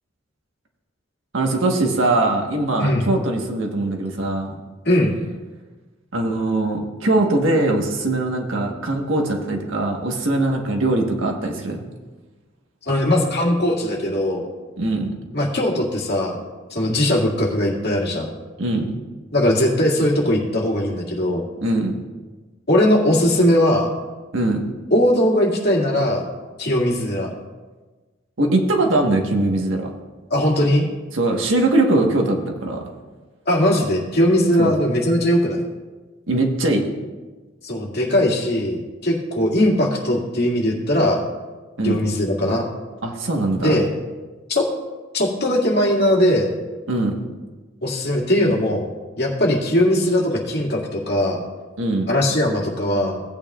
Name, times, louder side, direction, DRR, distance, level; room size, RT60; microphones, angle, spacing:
voice 1, 1.3-4.5 6.1-11.8 14.8-15.2 18.6-18.9 21.6-22.0 24.3-24.7 28.4-29.9 31.1-32.8 34.6-34.7 36.3-36.8 41.8-42.0 43.0-43.8 46.9-47.1 51.8-52.1, right 2 dB, 85° right, 1 dB, 1.4 m, -21 dB
voice 2, 2.8-3.1 4.9-5.2 12.9-14.5 15.3-16.4 16.7-18.4 19.3-21.5 22.7-23.9 24.9-26.3 26.6-27.3 30.3-30.9 33.5-35.6 37.6-41.2 41.8-42.6 43.6-43.9 44.5-44.7 45.1-46.5 47.8-48.9 49.2-51.4 52.1-53.2, left 1 dB, 55° left, -3 dB, 2.2 m, -19 dB
17.0 x 8.9 x 2.4 m, 1.3 s
head